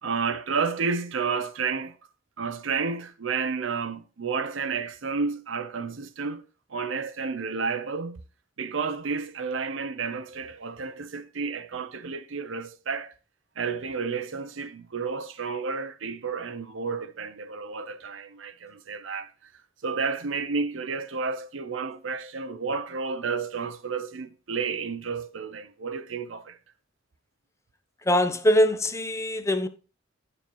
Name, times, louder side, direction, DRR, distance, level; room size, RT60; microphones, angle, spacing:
voice 1, 0.0-1.9 2.4-6.4 6.7-8.2 8.6-13.1 13.6-19.3 19.8-26.6, right 5 dB, 75° right, 0.7 m, -31 dB
voice 2, 28.1-29.7, left 1 dB, 15° left, 0.6 m, -22 dB
9.8 x 7.0 x 3.0 m
head